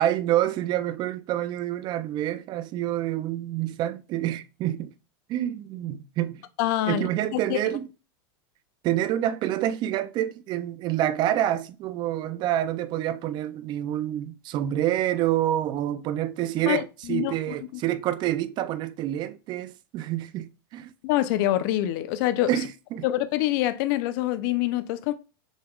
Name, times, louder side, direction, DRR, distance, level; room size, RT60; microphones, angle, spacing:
voice 1, 0.0-4.9 5.3-6.4 6.9-7.9 8.8-20.9 22.5-23.0, right 12 dB, 35° right, 0.5 m, -27 dB
voice 2, 6.6-7.8 16.7-16.8 17.1-17.3 21.0-22.5 23.0-25.1, left 14 dB, 55° left, 0.6 m, -25 dB
6.2 x 3.4 x 2.4 m
supercardioid pair, 135°, 13 cm